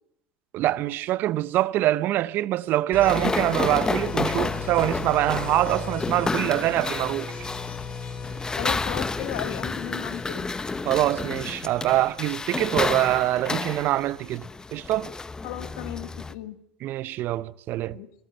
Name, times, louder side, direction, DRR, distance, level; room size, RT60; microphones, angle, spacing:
voice 1, 0.5-7.3 10.9-15.1 16.8-18.0, right 15 dB, 55° right, 0.7 m, -24 dB
sound 1, 2.9-12.6, left 6 dB, 35° left, 4.7 m, -37 dB
sound 2, 3.0-16.3, left 3 dB, 15° left, 0.9 m, -31 dB
voice 2, 8.6-10.5 15.4-16.6 17.9-18.1, left 13 dB, 70° left, 1.6 m, -35 dB
22.5 x 13.5 x 8.9 m
hypercardioid pair, 75°, 4 cm